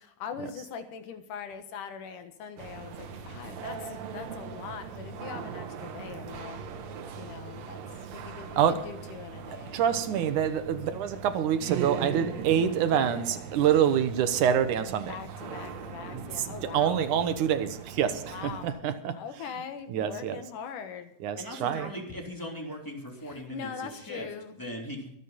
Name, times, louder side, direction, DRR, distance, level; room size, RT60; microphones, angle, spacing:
voice 1, 0.0-6.6 7.2-7.8 8.1-9.8 10.4-10.5 15.1-17.1 18.3-18.8 19.1-21.1 23.2-24.6, left 7 dB, 85° left, 8 dB, 2.9 m, -42 dB
sound 1, 2.6-18.7, right 6 dB, 65° right, 2.3 m, -40 dB
voice 2, 9.5-15.1 16.3-19.2 19.9-20.4 21.2-21.9, right 9 dB, 80° right, 10 dB, 2.5 m, -26 dB
voice 3, 21.4-25.1, equal, 5° left, 0 dB, 2.8 m, -39 dB
24.0 x 8.3 x 4.2 m, 0.70 s
omnidirectional pair, 3.6 m